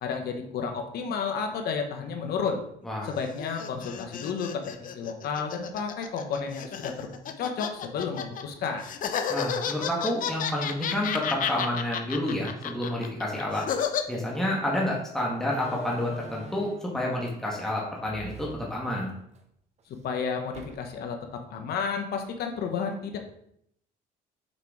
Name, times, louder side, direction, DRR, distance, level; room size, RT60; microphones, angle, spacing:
voice 1, 0.0-2.6 3.0-8.9 20.0-23.2, left 5 dB, 70° left, 4 dB, 1.2 m, -32 dB
sound 1, 3.0-8.4 8.8-14.0, left 8 dB, 55° left, 0.7 m, -32 dB
voice 2, 9.3-13.6 14.1-19.1, left 1 dB, 5° left, -4 dB, 1.5 m, -29 dB
Slam, 14.3-14.5 15.4-17.0 18.0-19.4 19.8-19.9 20.5-21.1, right 4 dB, 40° right, 0.8 m, -45 dB
6.7 x 4.6 x 3.7 m, 0.71 s
cardioid pair, 110°, 17 cm